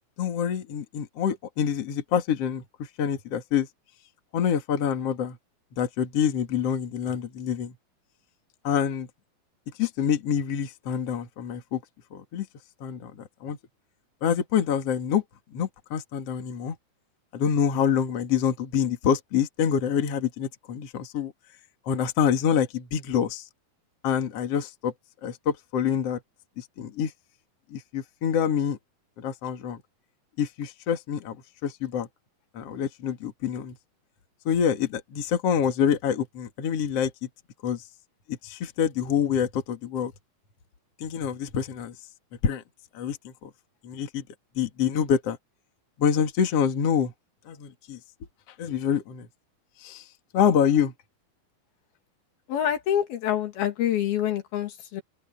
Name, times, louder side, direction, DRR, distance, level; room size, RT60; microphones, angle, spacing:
voice 1, 0.2-3.7 4.3-5.4 5.7-7.7 8.6-9.1 9.8-11.8 12.1-12.5 12.8-13.6 14.2-15.2 15.5-16.8 17.3-21.3 21.9-23.5 24.0-24.9 25.2-26.2 26.6-27.1 27.7-28.8 29.2-29.8 30.4-32.1 32.5-33.8 34.4-37.3 37.6-37.8 38.3-40.1 41.0-41.9 42.4-42.6 42.9-43.5 43.8-44.2 44.6-45.4 46.0-47.1 47.5-48.0 48.6-49.3 49.8-50.1 50.3-50.9, left 8 dB, 45° left, 2.7 m, -26 dB
voice 2, 52.5-55.0, left 10 dB, 80° left, 4.1 m, -26 dB
open air
omnidirectional pair, 4.3 m